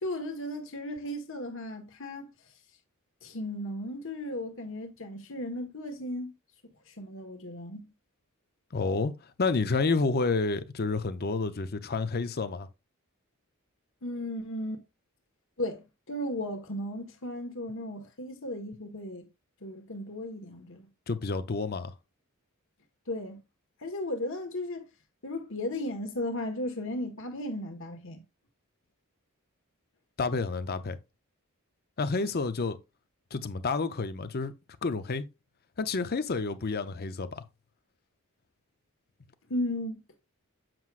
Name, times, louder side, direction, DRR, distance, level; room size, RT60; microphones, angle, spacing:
voice 1, 0.0-2.3 3.2-6.3 6.9-7.9 14.0-14.8 15.6-19.3 19.6-20.9 23.1-23.4 23.8-24.9 25.2-28.2 39.5-40.0, left 1 dB, 60° left, 1.5 m, -35 dB
voice 2, 8.7-9.1 9.4-12.7 21.1-21.9 30.2-31.0 32.0-32.8 33.3-34.5 34.8-35.3 35.8-37.4, left 4 dB, 45° left, 0.6 m, -29 dB
7.7 x 6.0 x 2.5 m
head